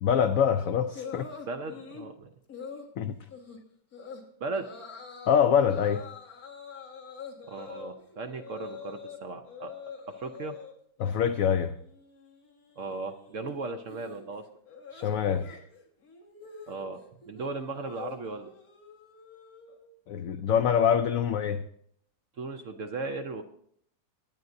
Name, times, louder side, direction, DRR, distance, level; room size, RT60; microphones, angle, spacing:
voice 1, 0.0-1.3 3.0-3.2 5.3-6.0 11.0-11.7 14.9-15.6 20.1-21.6, left 8 dB, 70° left, 9 dB, 0.8 m, -25 dB
sound 1, 0.9-2.1 2.5-2.9 3.3-3.6 3.9-4.2 4.5-5.3 5.7-9.2 9.4-10.7 11.1-11.5 11.7-19.9, left 5 dB, 55° left, 2.1 m, -45 dB
voice 2, 1.5-2.3 4.4-4.7 7.5-9.7 10.1-10.6 12.8-14.4 16.7-17.0 17.3-18.5 22.4-23.4, right 3 dB, 60° right, 6 dB, 0.9 m, -36 dB
22.5 x 9.4 x 2.6 m, 0.66 s
omnidirectional pair, 1.9 m